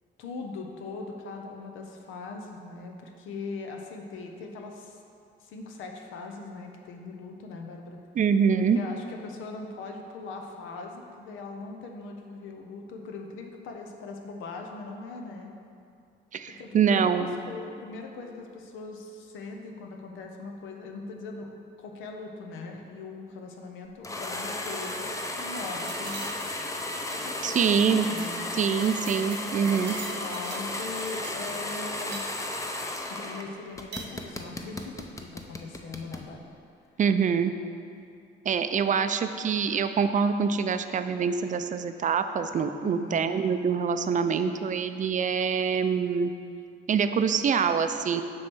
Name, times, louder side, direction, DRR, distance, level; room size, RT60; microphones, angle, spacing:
voice 1, 0.2-5.0 5.4-8.0 8.7-15.5 16.5-21.5 21.8-26.3 27.1-28.4 29.5-32.2 33.1-36.4 38.8-38.9 42.8-43.3, left 3 dB, 90° left, 2 dB, 0.7 m, -40 dB
voice 2, 8.2-8.8 16.3-17.3 27.4-28.1 28.5-30.0 37.0-37.5 38.5-46.3 46.9-48.2, right 6 dB, 40° right, 9 dB, 0.4 m, -25 dB
sound 1, 24.0-33.4 33.8-36.3, left 1 dB, 15° left, 0.6 m, -34 dB
sound 2, 25.9-26.7 27.0-27.3 27.6-27.9 28.2-28.4 28.6-30.7 31.0-32.7 33.7-34.1, right 5 dB, 65° right, 0.8 m, -44 dB
7.4 x 3.2 x 6.2 m, 2.4 s
cardioid pair, 90°, 20 cm